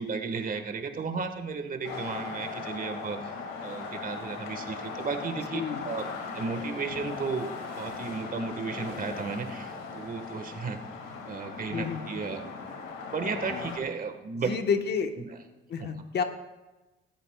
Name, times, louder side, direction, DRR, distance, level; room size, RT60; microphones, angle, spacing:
voice 1, 0.0-3.3 3.6-10.8 11.3-12.5 13.1-14.5 15.2-15.3 15.8-15.9, right 4 dB, 45° right, 6 dB, 1.5 m, -34 dB
sound 1, 1.8-13.8, left 4 dB, 90° left, 2.1 m, -38 dB
voice 2, 5.5-5.8 11.7-12.0 13.5-13.6 14.4-15.1 15.7-16.2, left 6 dB, 55° left, 6 dB, 1.2 m, -29 dB
18.5 x 13.5 x 2.3 m, 1.1 s
cardioid pair, 90°, 20 cm